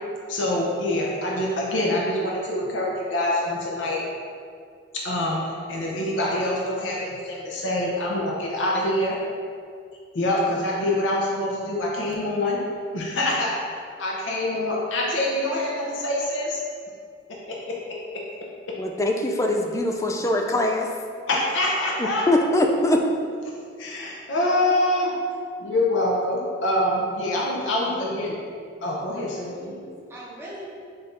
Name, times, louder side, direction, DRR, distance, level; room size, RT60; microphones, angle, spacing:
voice 1, 0.3-4.0 4.9-9.2 10.1-12.6 12.9-13.6 14.0-16.6 17.5-18.2 21.3-22.2 23.8-25.2 25.6-28.4 28.8-29.8, left 1 dB, 80° left, -3 dB, 0.7 m, -25 dB
voice 2, 18.8-20.9 22.0-23.0, left 1 dB, 15° left, 2 dB, 0.3 m, -22 dB
voice 3, 27.6-28.2 29.1-30.6, equal, 15° right, -8 dB, 1.0 m, -41 dB
5.5 x 2.7 x 3.3 m, 2.2 s
head